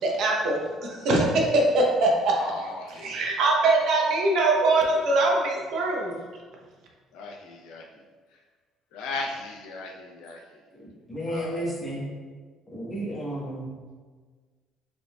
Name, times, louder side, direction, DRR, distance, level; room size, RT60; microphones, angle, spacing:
voice 1, 0.0-1.3 1.5-2.3 2.9-6.1, right 2 dB, 60° right, -1 dB, 0.8 m, -22 dB
voice 2, 2.4-3.2 7.1-7.8 8.9-10.4 11.3-11.7, left 3 dB, 85° left, 1 dB, 0.6 m, -37 dB
voice 3, 10.7-12.1 12.7-13.8, right 1 dB, 15° left, -6 dB, 1.2 m, -33 dB
5.0 x 3.6 x 2.3 m, 1.5 s
cardioid pair, 155°, 0 cm